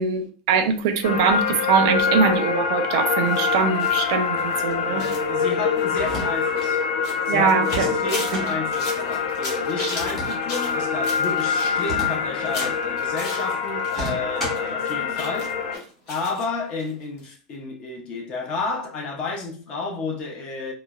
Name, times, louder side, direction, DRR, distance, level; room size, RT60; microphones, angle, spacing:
voice 1, 0.0-5.1 7.3-7.9 8.3-8.5, right 6 dB, 60° right, 0.4 m, -22 dB
sound 1, 1.0-15.8, left 6 dB, 90° left, 0.4 m, -25 dB
sound 2, 3.2-14.1 14.4-16.4 16.8-16.9 17.2-17.3, left 2 dB, 50° left, 0.9 m, -38 dB
voice 2, 4.8-6.8 7.3-15.5 16.1-20.7, left 3 dB, 30° left, 0.5 m, -31 dB
sound 3, 5.9-6.7 7.6-8.5 9.9-10.8 11.8-12.8 13.9-14.7, right 1 dB, 10° left, 0.8 m, -33 dB
3.0 x 2.0 x 2.3 m
supercardioid pair, 175°, 3 cm